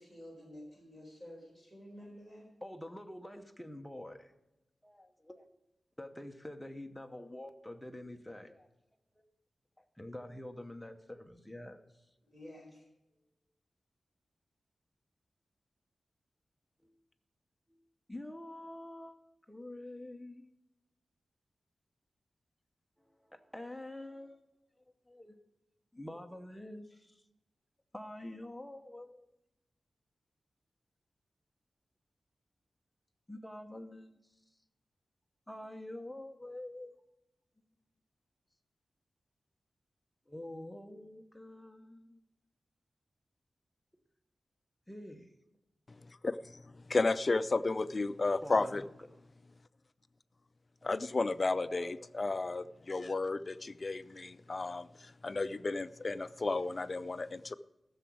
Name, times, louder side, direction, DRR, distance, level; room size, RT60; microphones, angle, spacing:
voice 1, 0.0-2.5 12.2-12.8, left 1 dB, 15° right, 4.4 m, -51 dB
voice 2, 2.6-4.3 4.8-5.5 6.0-8.7 9.2-9.3 9.8-11.8 12.4-12.6 16.8-16.9 17.7-17.8 18.1-20.5 23.0-24.4 25.1-25.4 25.9-27.2 27.9-29.3 33.3-34.2 35.5-37.0 40.3-42.2 44.9-45.4 48.4-49.1 51.6-52.0, left 1 dB, 5° left, 0.9 m, -47 dB
voice 3, 45.9-48.8 50.8-57.5, left 3 dB, 35° left, 0.4 m, -33 dB
14.0 x 6.9 x 6.2 m
wide cardioid pair, 140°, 0 cm